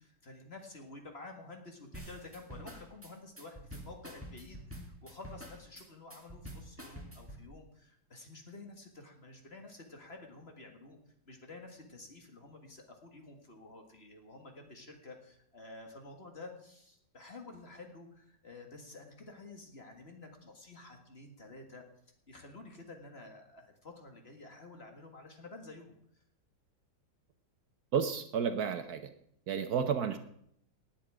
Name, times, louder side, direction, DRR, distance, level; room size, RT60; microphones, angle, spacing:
voice 1, 0.0-11.0 11.3-21.8 22.3-26.2, left 2 dB, 35° left, 3 dB, 1.9 m, -51 dB
sound 1, 1.9-7.4, equal, 5° right, 1.8 m, -47 dB
voice 2, 27.9-29.1 29.5-30.2, right 7 dB, 65° right, 9 dB, 1.2 m, -31 dB
18.5 x 9.0 x 4.9 m, 0.70 s
omnidirectional pair, 2.0 m